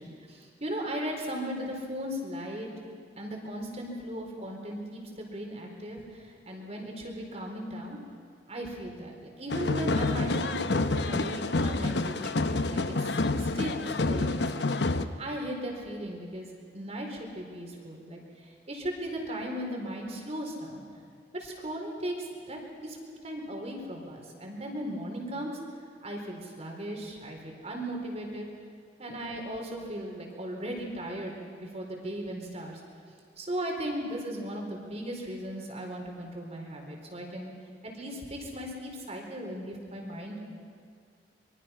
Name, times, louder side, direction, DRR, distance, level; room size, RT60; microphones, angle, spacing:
voice 1, 0.0-2.7 3.2-8.0 8.5-16.5 16.7-20.8 21.3-23.0 23.2-25.6 26.0-28.5 29.0-32.8 33.4-37.5 37.8-40.4, equal, 35° right, 1 dB, 4.4 m, -37 dB
sound 1, 9.5-15.0, left 2 dB, 70° left, 0.9 m, -28 dB
25.0 x 23.5 x 5.9 m, 2.2 s
head